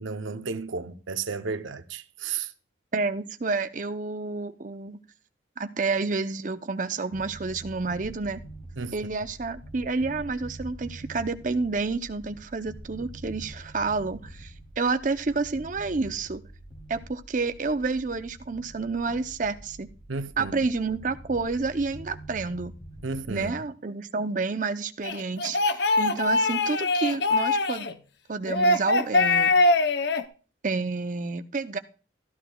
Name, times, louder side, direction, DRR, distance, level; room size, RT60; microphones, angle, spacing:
voice 1, 0.0-2.5 8.8-9.0 20.1-20.5 23.0-23.5, right 4 dB, 85° right, 0.7 m, -33 dB
voice 2, 2.9-5.0 5.6-8.4 8.9-16.4 16.9-19.9 20.4-22.8 23.3-27.9 28.3-29.5 30.6-31.8, right 4 dB, 40° right, 0.6 m, -29 dB
sound 1, 7.1-23.5, right 1 dB, 30° left, 2.9 m, -45 dB
sound 2, 25.0-27.9 28.5-30.2, left 2 dB, 60° left, 0.7 m, -22 dB
13.5 x 13.0 x 2.3 m
head